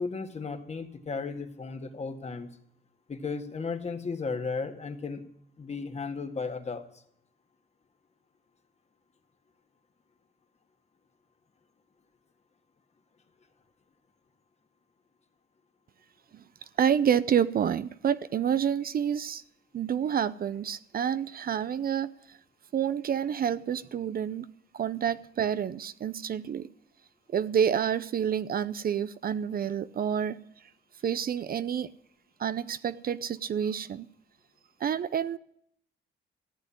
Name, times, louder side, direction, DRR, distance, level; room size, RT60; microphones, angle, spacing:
voice 1, 0.0-2.5 3.1-5.2 5.6-6.8, left 4 dB, 35° left, 1.9 m, -35 dB
voice 2, 16.8-19.4 19.7-22.4 22.7-24.5 24.7-26.7 27.3-30.4 31.0-31.9 32.4-34.1 34.8-35.4, right 8 dB, 50° right, 0.6 m, -28 dB
14.5 x 7.9 x 9.9 m
cardioid pair, 90°, 20 cm